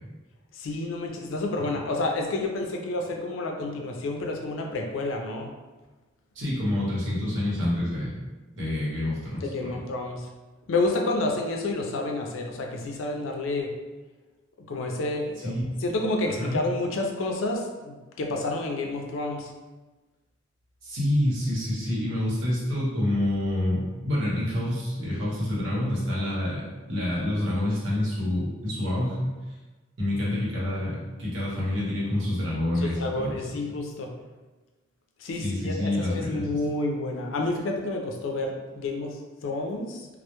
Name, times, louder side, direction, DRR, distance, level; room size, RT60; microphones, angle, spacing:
voice 1, 0.5-5.5 9.4-10.3 10.7-13.7 14.6-15.5 15.8-19.5 32.8-34.1 35.2-40.1, left 2 dB, 85° left, 2 dB, 0.4 m, -29 dB
voice 2, 6.3-8.2 8.6-9.8 15.4-15.6 16.4-16.6 20.8-29.3 30.0-33.4 35.4-36.5, left 1 dB, 75° right, -6 dB, 0.9 m, -27 dB
2.1 x 2.0 x 2.9 m, 1.2 s
head